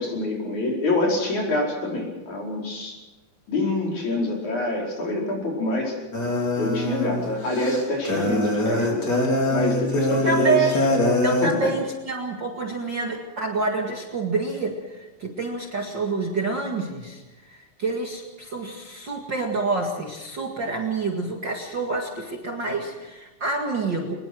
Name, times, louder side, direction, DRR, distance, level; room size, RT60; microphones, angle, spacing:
voice 1, 0.0-3.0 3.5-6.0 6.6-9.1 9.5-10.7 11.4-11.7, left 2 dB, 55° left, -1 dB, 6.2 m, -26 dB
sound 1, 6.1-11.5, left 1 dB, 30° left, 4.4 m, -23 dB
voice 2, 10.1-10.8 11.2-24.2, right 3 dB, 35° right, 1 dB, 2.2 m, -27 dB
23.0 x 21.0 x 6.2 m, 1.1 s
omnidirectional pair, 4.1 m